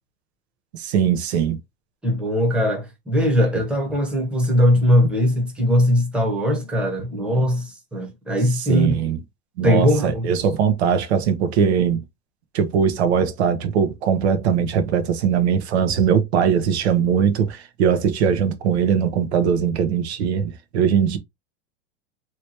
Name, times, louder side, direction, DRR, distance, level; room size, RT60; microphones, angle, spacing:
voice 1, 0.7-1.6 8.7-9.2 9.6-12.0 12.5-21.2, right 7 dB, 90° right, 0.9 m, -20 dB
voice 2, 2.0-9.0 9.6-10.2, left 1 dB, 5° right, 0.9 m, -20 dB
3.3 x 2.9 x 2.8 m
supercardioid pair, 150°, 32 cm